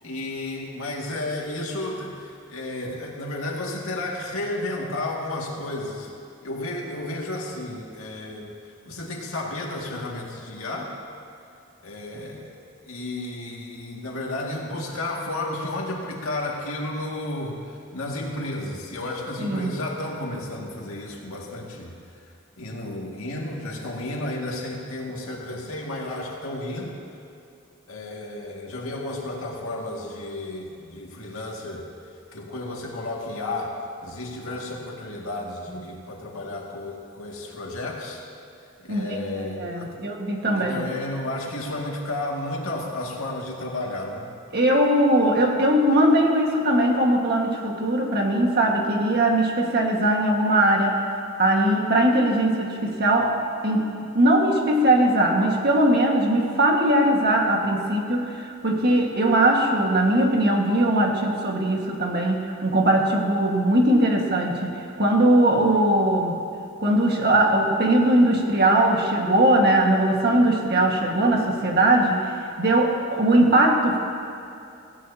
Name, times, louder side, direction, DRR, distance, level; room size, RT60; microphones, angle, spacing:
voice 1, 0.0-6.1 6.4-8.5 8.8-10.9 11.8-12.6 12.8-22.0 22.6-27.0 27.9-31.9 32.3-38.2 38.8-39.9 40.6-44.3, left 2 dB, 90° left, -2 dB, 2.1 m, -32 dB
voice 2, 19.4-19.7 38.9-39.2 39.6-40.8 44.5-51.0 51.4-53.3 53.6-64.7 65.0-66.3 66.8-72.2 72.6-74.0, right 1 dB, 50° right, 0 dB, 1.6 m, -20 dB
17.0 x 16.0 x 2.8 m, 2.6 s
head